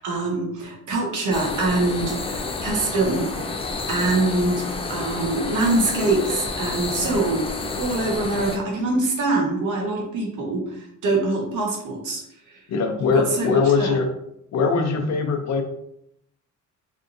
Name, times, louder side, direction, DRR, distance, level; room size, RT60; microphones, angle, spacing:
voice 1, 0.0-3.3 3.9-7.5 7.8-12.6 13.1-14.0, right 2 dB, 70° right, -1 dB, 1.1 m, -24 dB
sound 1, 1.3-8.6, left 3 dB, 20° left, 0.4 m, -30 dB
voice 2, 12.7-14.1 14.5-15.6, left 5 dB, 60° left, 4 dB, 0.6 m, -21 dB
3.4 x 2.6 x 2.6 m, 0.76 s
cardioid pair, 105°, 31 cm